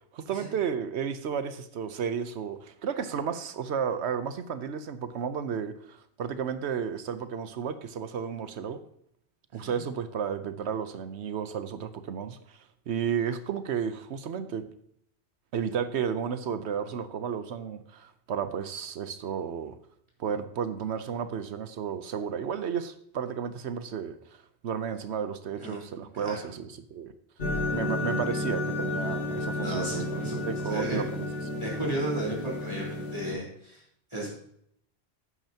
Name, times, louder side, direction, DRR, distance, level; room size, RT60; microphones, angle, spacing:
voice 1, 0.1-8.8 9.5-12.6 12.9-14.7 15.5-19.8 20.2-27.1 27.7-31.3, right 7 dB, 80° right, 11 dB, 1.0 m, -33 dB
sound 1, 27.4-33.3, left 2 dB, 60° left, 1.9 m, -32 dB
voice 2, 29.5-30.4 30.6-31.0 31.6-33.8 34.1-34.3, right 1 dB, 25° right, -5 dB, 4.0 m, -34 dB
11.0 x 9.0 x 2.9 m, 0.70 s
omnidirectional pair, 1.1 m